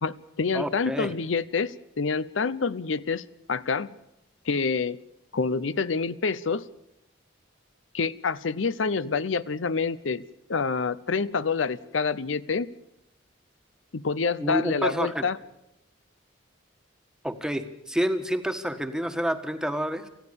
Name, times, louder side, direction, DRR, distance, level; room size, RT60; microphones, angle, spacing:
voice 1, 0.0-3.2 3.5-4.0 4.5-5.0 5.3-6.6 7.9-10.2 10.5-12.7 13.9-15.4, left 4 dB, 80° left, 17 dB, 0.7 m, -27 dB
voice 2, 0.5-1.1 14.4-15.3 17.2-20.1, equal, 5° right, 7 dB, 1.4 m, -28 dB
28.0 x 15.0 x 6.9 m, 0.83 s
head